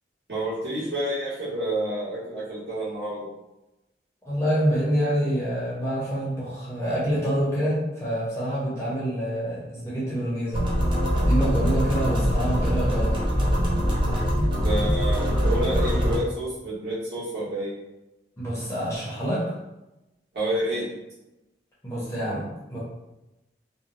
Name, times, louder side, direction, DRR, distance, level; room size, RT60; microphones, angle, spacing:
voice 1, 0.3-3.3 14.6-17.7 20.3-20.8, right 1 dB, 65° right, -9 dB, 1.5 m, -29 dB
voice 2, 4.2-10.6 11.2-13.2 18.4-19.5 21.8-22.8, equal, 15° left, -8 dB, 0.8 m, -27 dB
sound 1, 10.5-16.2, equal, 25° right, 0.6 m, -23 dB
3.0 x 2.2 x 2.5 m, 0.96 s
head